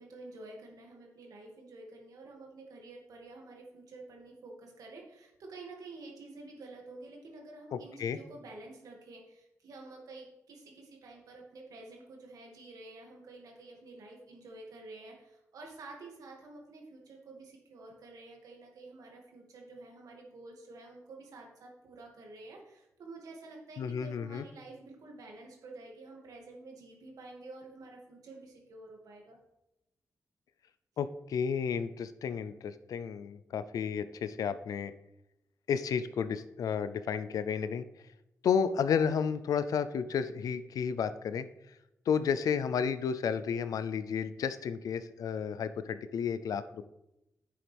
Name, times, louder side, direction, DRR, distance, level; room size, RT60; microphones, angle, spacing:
voice 1, 0.0-29.4, right 2 dB, 85° right, 0 dB, 2.3 m, -49 dB
voice 2, 7.7-8.2 23.8-24.5 31.0-34.9 35.7-37.9 38.4-41.5 42.1-46.8, left 7 dB, 90° left, 13 dB, 0.5 m, -32 dB
10.0 x 7.6 x 3.5 m, 0.88 s
cardioid pair, 95°, 6 cm